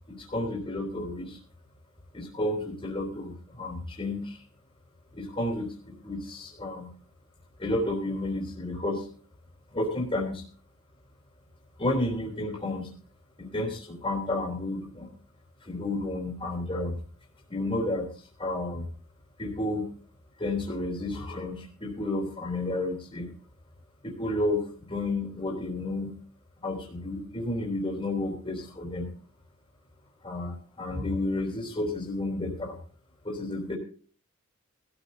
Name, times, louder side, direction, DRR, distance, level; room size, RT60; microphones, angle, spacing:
voice 1, 0.1-1.4 2.1-4.4 5.1-6.9 7.6-9.0 9.7-10.4 11.8-12.9 13.4-15.1 15.7-17.0 17.5-18.1 18.4-18.9 19.4-19.9 20.4-23.3 24.0-26.2 26.6-29.1 30.2-32.8 33.2-33.8, left 2 dB, 25° left, -1 dB, 3.6 m, -31 dB
20.0 x 14.0 x 2.8 m, 0.41 s
head